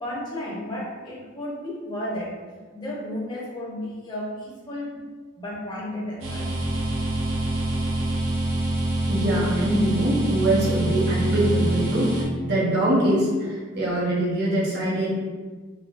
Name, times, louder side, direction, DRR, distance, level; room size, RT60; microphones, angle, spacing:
voice 1, 0.0-2.3 2.7-5.0 5.4-6.5, left 1 dB, 20° left, -6 dB, 0.6 m, -33 dB
sound 1, 6.2-12.2, right 1 dB, 70° right, 0.7 m, -25 dB
voice 2, 9.1-15.1, right 1 dB, 50° right, -6 dB, 1.0 m, -23 dB
3.8 x 2.7 x 2.5 m, 1.4 s
head